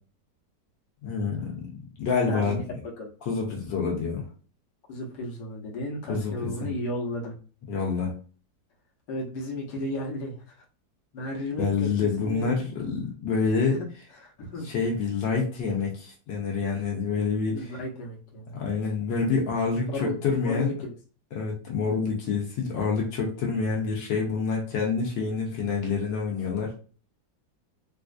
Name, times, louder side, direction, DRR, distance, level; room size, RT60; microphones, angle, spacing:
voice 1, 1.0-1.7 2.0-2.6 3.3-4.2 6.1-6.7 7.7-8.2 11.6-13.8 14.6-17.8 18.6-20.7 21.3-26.7, left 5 dB, 80° left, -1 dB, 1.5 m, -27 dB
voice 2, 2.3-2.6 3.0-3.1 4.9-7.3 9.1-10.4 11.1-11.9 12.2-12.5 14.2-14.7 17.5-18.5 19.7-20.9, left 1 dB, 65° left, -3 dB, 1.5 m, -33 dB
4.2 x 2.5 x 2.4 m, 0.39 s
omnidirectional pair, 1.9 m